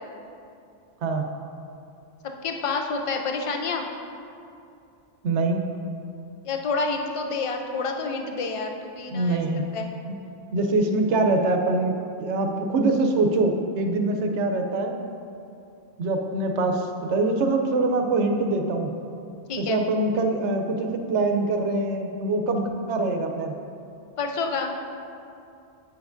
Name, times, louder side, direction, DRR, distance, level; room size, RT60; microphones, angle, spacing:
voice 1, 2.4-3.9 6.4-9.4 9.7-9.9 19.5-19.8 24.2-24.7, left 4 dB, 45° left, 3 dB, 0.4 m, -28 dB
voice 2, 5.2-5.6 9.1-9.7 10.5-14.9 16.0-18.9 19.6-23.5, right 2 dB, 85° right, 4 dB, 1.0 m, -24 dB
8.8 x 7.1 x 2.6 m, 2.6 s
omnidirectional pair, 1.2 m